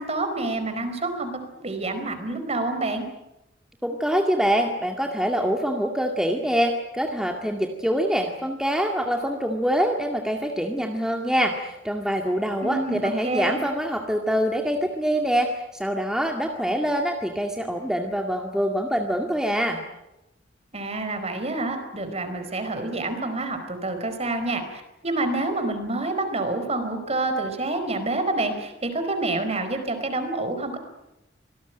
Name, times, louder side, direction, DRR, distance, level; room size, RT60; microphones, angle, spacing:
voice 1, 0.0-3.1 12.6-13.6 20.7-30.8, right 2 dB, 35° right, 8 dB, 4.6 m, -28 dB
voice 2, 3.8-19.8, equal, 5° right, 2 dB, 2.1 m, -25 dB
26.0 x 19.0 x 9.2 m, 0.91 s
head